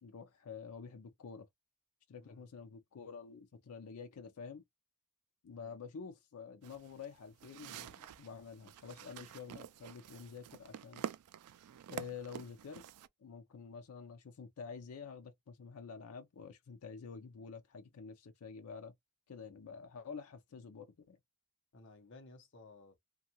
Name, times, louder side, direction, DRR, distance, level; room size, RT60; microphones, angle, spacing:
voice 1, 0.0-1.5 2.1-4.6 5.4-11.1 11.9-12.8 13.2-18.9 19.3-21.2, left 5 dB, 80° left, 0.5 m, -49 dB
sound 1, 6.6-13.1, right 9 dB, 90° right, 0.3 m, -48 dB
voice 2, 21.7-23.0, left 2 dB, 55° left, 0.8 m, -57 dB
2.7 x 2.3 x 2.8 m
head